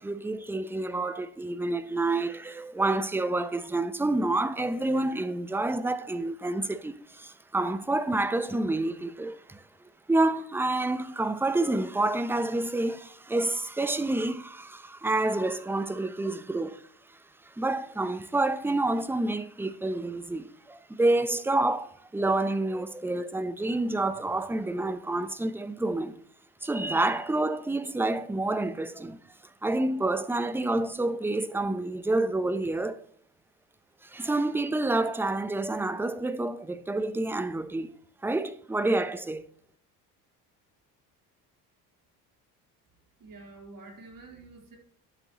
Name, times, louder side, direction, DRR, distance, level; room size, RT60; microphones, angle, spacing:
voice 1, 0.0-9.6 10.1-16.8 17.4-26.2 26.6-29.2 29.6-33.0 34.0-38.0 38.2-39.5, right 2 dB, 5° right, 0.7 m, -28 dB
voice 2, 43.2-44.8, right 3 dB, 45° right, 3.7 m, -48 dB
11.5 x 7.6 x 2.9 m
hypercardioid pair, 65°, 46 cm